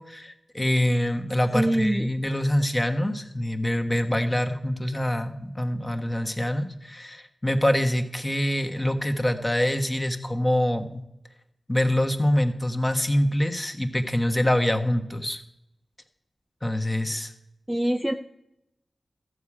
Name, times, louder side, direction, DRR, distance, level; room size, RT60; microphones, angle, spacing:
voice 1, 0.0-11.0 11.7-15.4 16.6-17.3, left 1 dB, 20° left, 5 dB, 1.3 m, -25 dB
voice 2, 1.5-2.1 17.7-18.1, right 1 dB, 5° right, 5 dB, 0.5 m, -23 dB
14.0 x 4.8 x 8.6 m, 0.82 s
wide cardioid pair, 75°, 0 cm